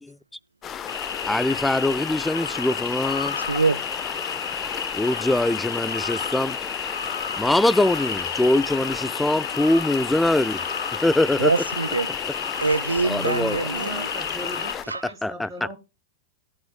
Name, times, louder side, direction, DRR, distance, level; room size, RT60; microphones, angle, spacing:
sound 1, 0.6-14.8, left 9 dB, 25° left, 0.9 m, -34 dB
sound 2, 0.9-14.7, left 5 dB, 70° left, 2.2 m, -31 dB
voice 1, 1.3-3.4 4.9-6.6 7.4-10.6 11.0-11.5 13.0-13.6 15.2-15.5, left 1 dB, 5° left, 0.4 m, -22 dB
voice 2, 3.4-3.8 11.4-12.1 12.6-14.1 14.8-15.1, right 3 dB, 80° right, 0.4 m, -24 dB
voice 3, 13.6-15.8, right 1 dB, 25° right, 3.6 m, -39 dB
14.5 x 9.3 x 2.2 m
figure-of-eight pair, 90°, 0 cm